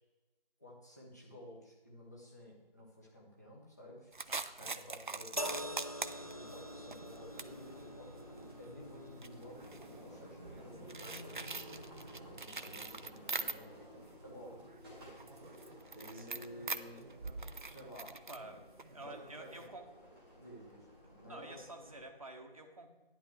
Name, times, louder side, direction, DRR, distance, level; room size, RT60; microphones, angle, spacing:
voice 1, 0.6-4.1 4.6-11.6 12.2-13.8 14.2-14.6 15.9-17.1 17.6-18.6 18.9-19.6 20.4-21.6, equal, 15° left, -3 dB, 1.2 m, -53 dB
sound 1, 4.1-13.9 14.3-19.7, right 3 dB, 55° right, 0.5 m, -45 dB
voice 2, 4.3-4.8 16.1-16.4 18.3-19.9 21.3-22.9, right 2 dB, 35° right, 3 dB, 1.1 m, -50 dB
sound 2, 5.4-18.7 19.6-19.8, equal, 40° left, 0.4 m, -49 dB
sound 3, 6.0-22.0, equal, 5° right, 1.5 m, -55 dB
10.5 x 10.0 x 3.2 m, 1.2 s
figure-of-eight pair, 165°, 30 cm